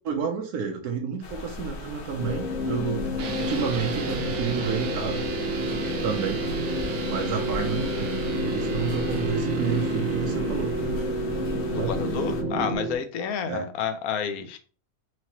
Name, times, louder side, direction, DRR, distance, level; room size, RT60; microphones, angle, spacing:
voice 1, 0.0-3.1 3.4-5.2 6.0-6.4 7.0-10.7 11.8-12.0 13.5-13.7, right 6 dB, 90° right, 2 dB, 1.2 m, -30 dB
sound 1, 1.2-12.4, left 2 dB, 55° left, 0.7 m, -38 dB
sound 2, 2.2-12.8, left 3 dB, 35° left, 1.1 m, -32 dB
sound 3, 3.2-13.0, right 4 dB, 65° right, 1.0 m, -31 dB
voice 2, 11.7-14.6, left 7 dB, 75° left, 8 dB, 1.1 m, -30 dB
4.6 x 2.8 x 2.9 m, 0.38 s
omnidirectional pair, 1.6 m